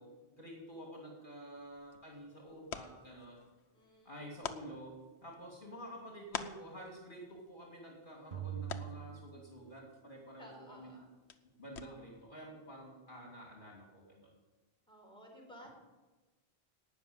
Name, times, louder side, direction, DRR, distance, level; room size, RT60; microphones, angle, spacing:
voice 1, 0.0-3.5 4.0-11.1 11.6-14.3, equal, 50° left, -2 dB, 3.0 m, -50 dB
sound 1, 1.5-12.3, left 6 dB, 85° left, 1.1 m, -50 dB
voice 2, 3.7-4.3 10.4-11.1 11.8-12.0 14.9-15.7, equal, 5° left, -2 dB, 4.1 m, -56 dB
sound 2, 8.3-10.1, right 10 dB, 55° right, 1.4 m, -44 dB
18.5 x 6.3 x 8.9 m, 1.2 s
omnidirectional pair, 1.1 m